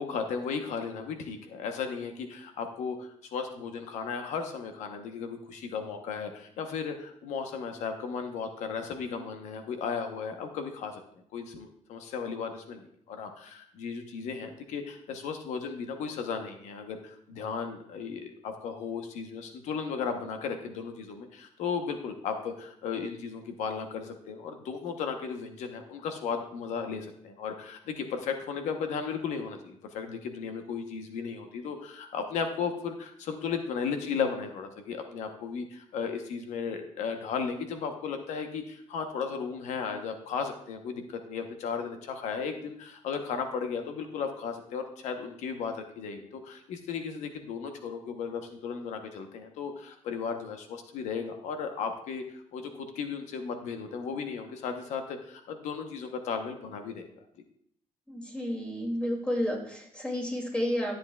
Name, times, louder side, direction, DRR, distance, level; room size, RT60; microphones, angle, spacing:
voice 1, 0.0-11.0 11.3-57.1, left 6 dB, 90° left, 6 dB, 0.9 m, -35 dB
voice 2, 58.1-61.0, equal, 10° left, -1 dB, 2.4 m, -31 dB
13.0 x 7.7 x 2.3 m, 0.67 s
cardioid pair, 110°, 12 cm